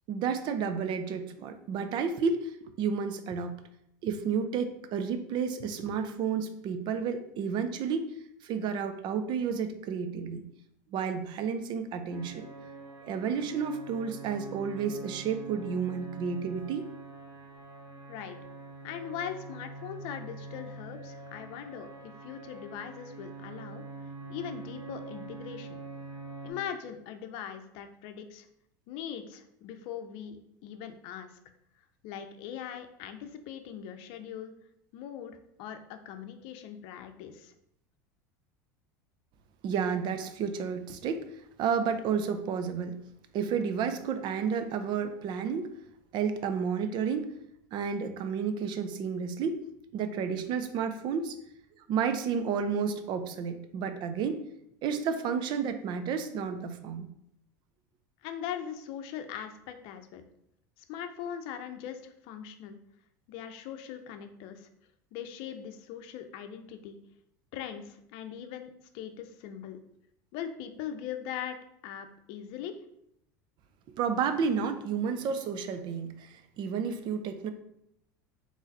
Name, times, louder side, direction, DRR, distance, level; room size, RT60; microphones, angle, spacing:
voice 1, 0.1-3.6 4.0-8.1 8.4-10.5 10.9-12.5 13.0-16.8 39.6-41.3 41.6-43.0 43.3-45.7 46.1-47.3 47.7-49.6 49.9-51.4 51.8-54.4 54.8-57.1 74.0-77.5, right 6 dB, 50° right, 9 dB, 0.6 m, -31 dB
sound 1, 12.1-26.5, right 3 dB, 30° right, 1.4 m, -45 dB
voice 2, 18.8-23.8 24.3-25.8 26.4-28.5 28.9-30.4 30.6-31.3 32.0-34.5 34.9-37.5 58.2-60.2 60.8-62.8 63.3-64.7 65.1-67.0 67.5-69.8 70.3-71.6 71.8-72.8, left 9 dB, 65° left, 8 dB, 0.6 m, -40 dB
4.0 x 3.1 x 4.0 m, 0.75 s
hypercardioid pair, 95°, 10 cm